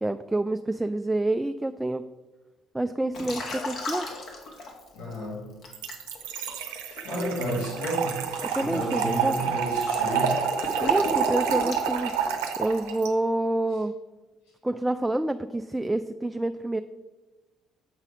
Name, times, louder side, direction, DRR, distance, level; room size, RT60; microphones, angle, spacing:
voice 1, 0.0-2.0 2.7-4.1 8.5-9.4 10.8-12.1 12.6-13.9 14.6-16.8, right 2 dB, 10° right, 9 dB, 0.3 m, -27 dB
Liquid, 3.1-5.2 5.6-12.6, left 3 dB, 60° left, 1.5 m, -37 dB
voice 2, 4.9-5.5 7.0-10.4, right 1 dB, 80° left, -5 dB, 2.2 m, -31 dB
Trickle dribble / Fill (with liquid), 5.7-13.1, right 7 dB, 80° right, 0.7 m, -28 dB
7.5 x 4.1 x 4.9 m, 1.2 s
hypercardioid pair, 55°, 0 cm